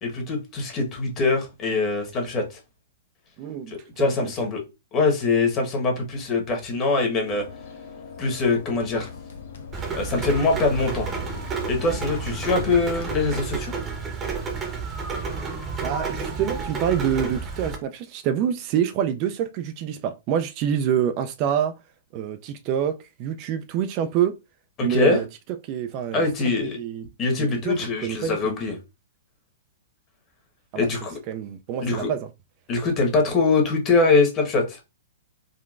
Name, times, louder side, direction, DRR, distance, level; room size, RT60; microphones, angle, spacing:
voice 1, 0.0-2.6 3.7-4.6 4.9-7.4 8.2-9.1 9.9-11.1 11.7-13.7 24.8-25.2 26.1-26.8 27.2-28.7 30.7-31.1 31.8-32.1 32.7-34.8, left 3 dB, 30° left, 1.1 m, -23 dB
voice 2, 3.4-4.3 13.5-13.6 15.8-21.7 22.1-24.3 24.8-25.2 25.6-27.0 27.6-28.4 30.7-30.9 31.3-32.3, right 9 dB, 40° right, 0.3 m, -26 dB
sound 1, 7.2-13.3, left 5 dB, 70° left, 0.7 m, -39 dB
Rain, 9.7-17.7, right 5 dB, 20° right, 0.8 m, -31 dB
3.7 x 2.2 x 2.4 m
hypercardioid pair, 130°, 0 cm